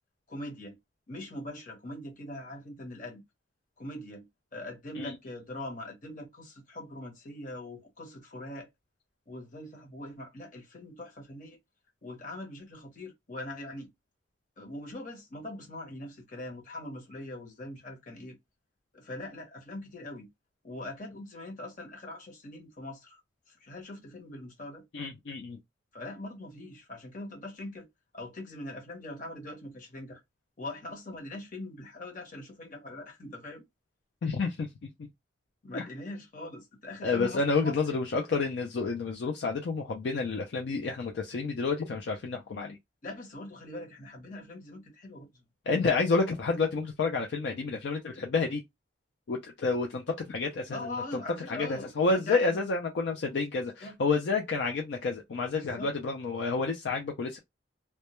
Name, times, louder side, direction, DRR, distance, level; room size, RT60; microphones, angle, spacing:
voice 1, 0.3-0.8 1.1-3.2 3.8-4.3 4.5-8.7 9.3-11.6 12.0-13.9 14.6-18.4 18.9-20.3 20.6-23.2 23.5-24.8 25.9-27.9 28.1-30.2 30.6-33.6 35.6-38.0 43.0-45.4 50.7-52.6 53.8-54.0 55.5-55.9, left 1 dB, 45° left, 0.9 m, -42 dB
voice 2, 24.9-25.6 34.2-34.7 35.7-35.8 37.0-42.8 45.7-48.6 49.3-51.2 51.5-57.4, left 4 dB, 65° left, 0.4 m, -29 dB
2.1 x 2.1 x 2.9 m
head